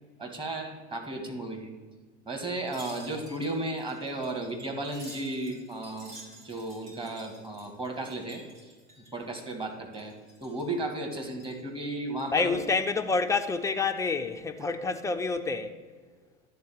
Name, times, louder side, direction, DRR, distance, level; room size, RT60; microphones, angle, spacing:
voice 1, 0.2-1.7 2.2-8.7 9.1-10.1 10.4-12.6 14.6-14.7, right 2 dB, 15° right, 1.7 m, -34 dB
Wind chime, 2.6-9.7 9.9-10.7 11.1-11.6 12.1-13.0 13.4-13.6, right 1 dB, 60° right, 3.3 m, -51 dB
voice 2, 12.3-15.7, left 4 dB, 10° left, 0.5 m, -28 dB
11.0 x 4.0 x 7.7 m
figure-of-eight pair, 80°, 38 cm